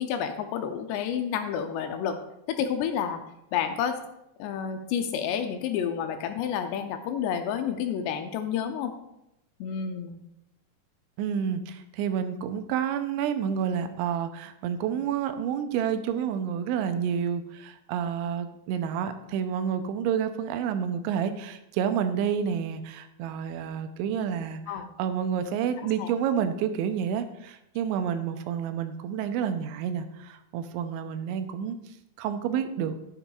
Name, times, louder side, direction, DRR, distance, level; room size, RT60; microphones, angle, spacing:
voice 1, 0.0-2.2 2.5-3.2 3.5-4.0 4.4-8.9 9.6-10.2 24.7-24.9 26.0-26.1, left 8 dB, 80° left, 7 dB, 2.6 m, -30 dB
voice 2, 11.2-31.8 32.2-33.0, right 8 dB, 85° right, 9 dB, 2.9 m, -29 dB
11.0 x 9.7 x 2.4 m, 0.85 s
omnidirectional pair, 5.2 m